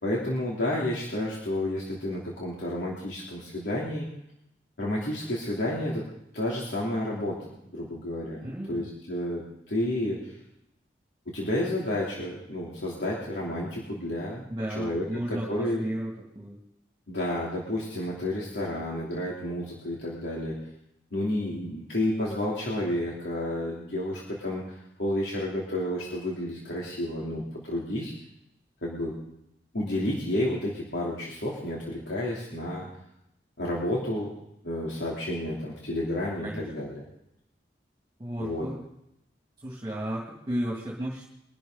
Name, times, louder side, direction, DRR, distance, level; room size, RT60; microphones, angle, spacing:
voice 1, 0.0-4.1 4.8-6.1 6.3-7.4 7.7-10.3 11.3-14.4 14.7-15.8 17.1-20.6 21.1-28.1 28.8-29.2 29.7-32.8 33.6-34.3 34.6-37.0 38.4-38.6, left 1 dB, 85° left, -5 dB, 3.1 m, -31 dB
voice 2, 8.4-8.9 14.5-16.6 36.4-36.7 38.2-38.8 39.6-41.2, equal, 25° right, -4 dB, 2.3 m, -34 dB
23.0 x 11.5 x 4.0 m, 0.83 s
head